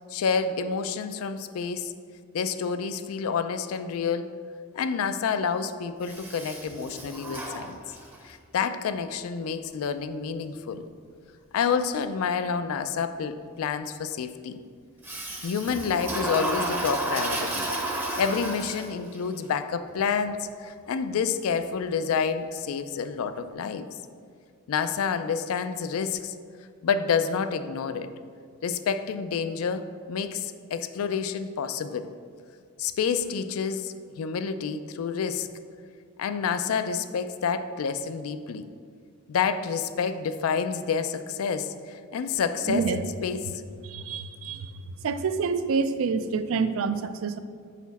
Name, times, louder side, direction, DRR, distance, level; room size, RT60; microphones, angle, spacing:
voice 1, 0.1-1.9 2.3-4.3 4.7-7.8 8.2-10.9 11.5-14.6 15.4-17.7 18.2-24.0 24.7-26.3 26.8-28.1 28.6-32.1 32.8-35.5 36.2-38.7 39.3-43.5, left 6 dB, 75° left, 10 dB, 0.3 m, -28 dB
Toilet flush, 6.0-8.3 15.0-19.2, right 1 dB, 10° right, 0.6 m, -32 dB
voice 2, 42.7-43.0 43.9-44.7 45.0-47.4, right 5 dB, 65° right, 11 dB, 0.3 m, -27 dB
5.9 x 4.1 x 4.1 m, 2.1 s
head